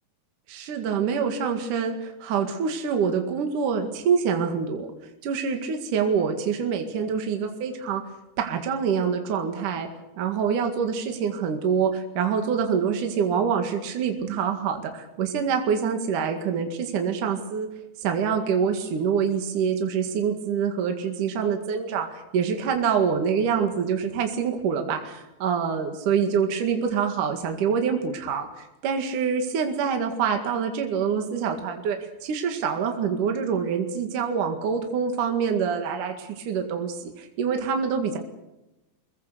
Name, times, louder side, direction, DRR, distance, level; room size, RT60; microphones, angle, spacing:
voice 1, 0.5-4.9 5.2-8.0 8.4-9.9 10.2-17.7 18.0-38.2, right 6 dB, 65° right, 4 dB, 3.4 m, -26 dB
25.5 x 21.5 x 6.8 m, 0.95 s
omnidirectional pair, 4.2 m